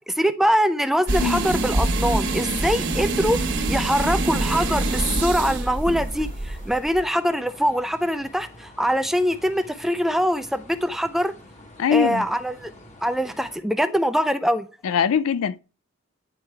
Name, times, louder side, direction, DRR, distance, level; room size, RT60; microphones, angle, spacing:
voice 1, 0.1-3.4 3.7-11.3 11.9-12.7 13.0-14.7, equal, ahead, 0.3 m, -23 dB
sound 1, 1.1-7.0, right 2 dB, 55° right, 1.2 m, -25 dB
sound 2, 3.5-13.6, left 1 dB, 35° left, 1.1 m, -47 dB
voice 2, 11.8-12.3 14.8-15.6, left 7 dB, 80° left, 0.4 m, -22 dB
9.5 x 4.6 x 3.3 m
head